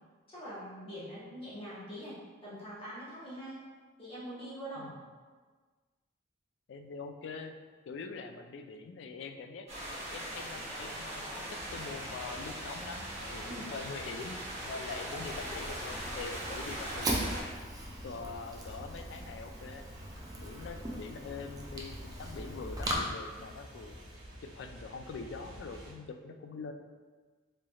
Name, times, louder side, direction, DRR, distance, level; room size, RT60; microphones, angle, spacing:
voice 1, 0.3-3.6 4.0-4.9 13.5-13.7, equal, 30° left, -10 dB, 1.4 m, -43 dB
voice 2, 6.7-7.6 7.9-9.7 10.1-17.5 18.0-19.9 20.4-24.0 24.4-26.7, left 4 dB, 75° left, 6 dB, 0.3 m, -44 dB
sound 1, 9.7-17.4, right 1 dB, 35° right, 1.1 m, -40 dB
sound 2, 11.5-25.9, equal, 90° right, 1.3 m, -51 dB
Fire, 15.2-23.0, right 1 dB, 20° right, 0.4 m, -39 dB
3.9 x 3.2 x 2.3 m, 1.4 s
head